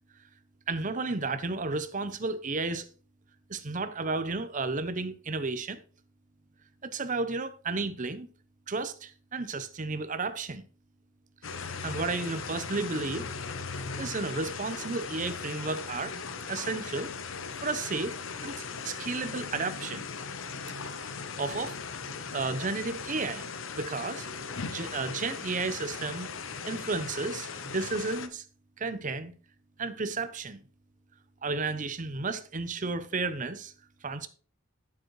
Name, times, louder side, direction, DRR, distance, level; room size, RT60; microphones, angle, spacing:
voice 1, 0.7-2.9 3.5-5.8 6.8-8.3 8.7-10.6 11.8-13.3 14.0-16.2 16.5-17.1 17.5-20.0 21.1-21.8 22.3-23.5 23.7-24.3 24.7-26.3 26.6-28.4 28.8-29.3 29.8-30.6 31.4-33.7 34.0-34.3, right 3 dB, 40° right, 0.8 m, -33 dB
sound 1, 11.4-28.3, left 5 dB, 75° left, 0.8 m, -38 dB
9.1 x 7.3 x 3.1 m
head